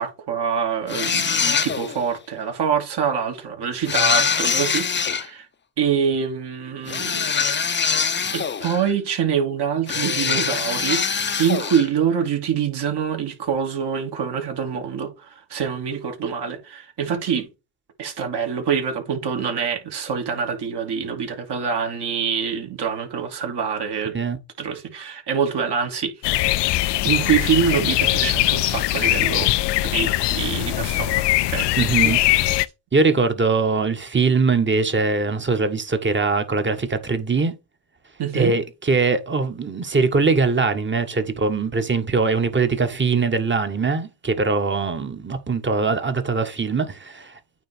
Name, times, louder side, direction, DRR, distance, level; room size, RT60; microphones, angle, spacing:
voice 1, 0.0-5.5 5.8-7.3 8.3-17.5 18.0-24.2 24.6-26.2 27.0-29.5 29.8-31.7 38.2-38.5, right 7 dB, 55° right, 3.1 m, -25 dB
sound 1, 0.9-2.1 3.9-5.3 6.9-8.9 9.9-11.9, left 6 dB, 20° left, 0.8 m, -23 dB
sound 2, 26.2-32.6, left 16 dB, 55° left, 0.6 m, -21 dB
voice 2, 31.8-32.4 32.9-37.5 38.3-47.4, right 4 dB, 25° right, 1.5 m, -22 dB
9.0 x 3.4 x 4.5 m
supercardioid pair, 80°, 49 cm